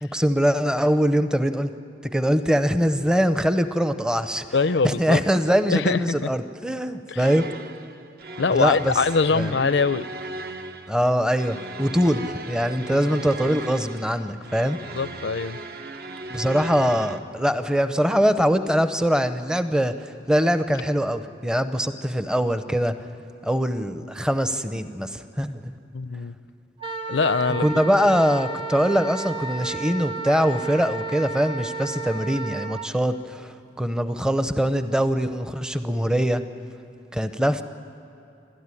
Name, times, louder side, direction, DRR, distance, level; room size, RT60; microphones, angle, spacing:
voice 1, 0.0-1.7 2.0-4.5 4.8-7.5 8.5-9.0 9.3-9.5 10.9-14.8 16.3-22.9 23.4-25.7 27.6-36.4 37.1-37.6, equal, 5° right, 10 dB, 0.7 m, -23 dB
voice 2, 4.5-5.2 5.7-6.3 7.1-7.2 8.4-10.1 12.8-13.1 14.9-15.6 25.9-26.3 27.1-27.7, left 4 dB, 75° left, 15 dB, 0.6 m, -23 dB
sound 1, 7.2-17.2, right 2 dB, 55° right, 1.0 m, -37 dB
Wind instrument woodwind instrument, 26.8-32.9, right 3 dB, 30° right, 0.9 m, -32 dB
28.5 x 13.0 x 9.8 m, 2.8 s
head